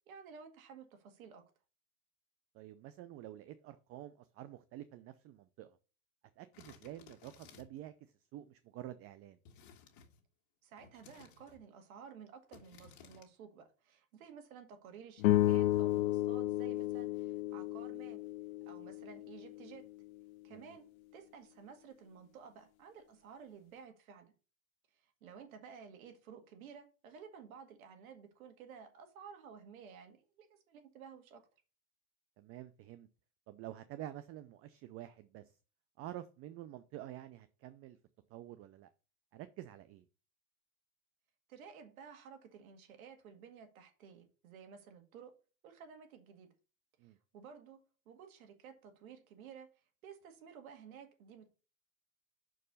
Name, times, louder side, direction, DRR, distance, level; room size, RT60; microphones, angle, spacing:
voice 1, 0.1-1.4 10.6-18.2 18.7-19.9 20.4-24.3 24.9-31.4 41.5-45.3 45.6-46.5 47.0-51.5, right 7 dB, 80° right, 2.0 m, -54 dB
voice 2, 2.5-5.8 6.4-7.9 8.3-9.4 20.5-20.8 32.4-33.1 33.5-35.5 36.0-38.0 38.3-38.9 39.3-40.0 47.0-47.2, right 13 dB, 35° right, 0.5 m, -49 dB
sound 1, 6.5-7.9 9.5-10.2 10.8-11.6 12.5-13.3, left 7 dB, 45° left, 1.7 m, -59 dB
sound 2, 15.2-19.7, left 16 dB, 80° left, 0.6 m, -33 dB
6.1 x 4.6 x 5.5 m
supercardioid pair, 125°, 41 cm